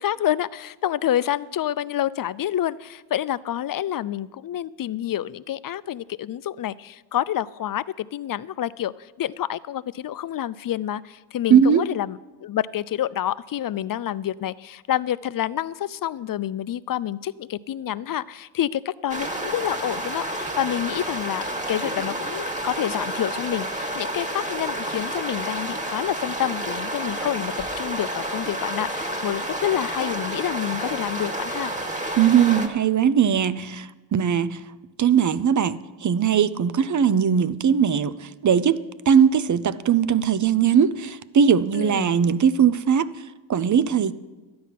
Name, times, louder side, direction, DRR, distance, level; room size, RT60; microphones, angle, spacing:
voice 1, 0.0-31.7 41.7-42.2, left 11 dB, 50° left, 0.5 m, -28 dB
voice 2, 11.5-11.8 32.2-34.6 35.0-38.8 39.1-43.1 43.5-44.1, right 8 dB, 40° right, 0.6 m, -19 dB
sound 1, 19.1-32.7, right 1 dB, 15° right, 1.6 m, -30 dB
12.5 x 9.5 x 5.8 m
cardioid pair, 70°, 45 cm